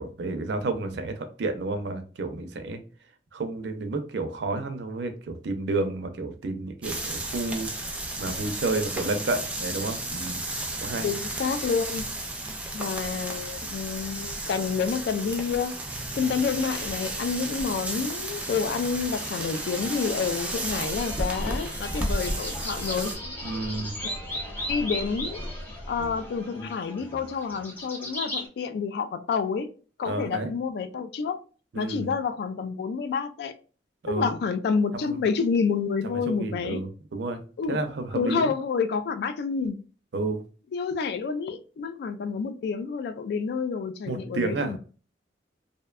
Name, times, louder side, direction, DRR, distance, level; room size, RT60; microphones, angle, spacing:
voice 1, 0.0-2.8 3.3-7.9 8.2-10.4 10.8-11.1 23.4-24.1 30.0-30.5 31.7-32.1 34.0-34.3 34.9-35.2 36.0-37.4 37.7-38.5 40.1-40.4 44.1-44.8, right 3 dB, 70° right, 0.4 m, -31 dB
sound 1, 6.8-23.2, right 1 dB, 10° right, 0.4 m, -33 dB
voice 2, 11.0-12.1 12.7-15.7 16.1-23.2 24.0-24.1 24.7-25.4 25.9-29.7 30.0-31.4 31.8-33.5 34.1-36.8 37.6-37.8 38.1-39.8 40.7-44.8, left 5 dB, 65° left, 0.3 m, -28 dB
sound 2, 18.8-28.4, left 1 dB, 10° left, 0.9 m, -37 dB
2.6 x 2.1 x 2.3 m
head